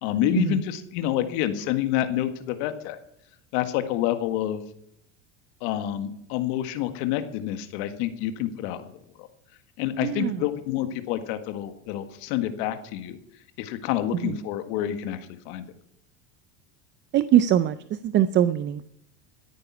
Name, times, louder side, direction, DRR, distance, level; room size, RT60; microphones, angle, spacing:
voice 1, 0.0-3.0 3.5-4.6 5.6-8.9 9.2-9.3 9.8-13.2 13.6-15.2 15.4-15.6, left 11 dB, 65° left, 9 dB, 1.8 m, -28 dB
voice 2, 10.0-10.4 14.2-14.4 17.1-18.9, right 11 dB, 30° right, 14 dB, 0.5 m, -22 dB
14.0 x 9.5 x 5.9 m, 0.73 s
supercardioid pair, 130°, 37 cm